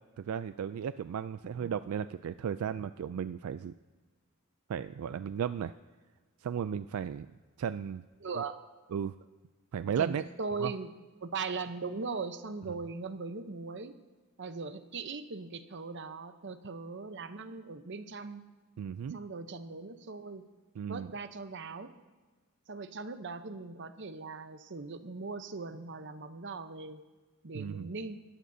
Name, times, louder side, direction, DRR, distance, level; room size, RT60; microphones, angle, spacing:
voice 1, 0.2-3.7 4.7-5.7 6.4-7.3 7.6-8.0 8.4-8.5 8.9-9.1 9.7-10.2 10.6-10.7 18.8-19.2 20.8-21.1 27.5-27.9, right 8 dB, 80° right, 13 dB, 0.3 m, -35 dB
voice 2, 8.2-8.6 10.0-10.9 11.2-13.9 14.4-18.4 19.1-20.5 20.9-21.9 22.7-27.0 27.4-28.2, right 4 dB, 55° right, 10 dB, 0.8 m, -39 dB
20.0 x 15.0 x 2.7 m, 1.3 s
head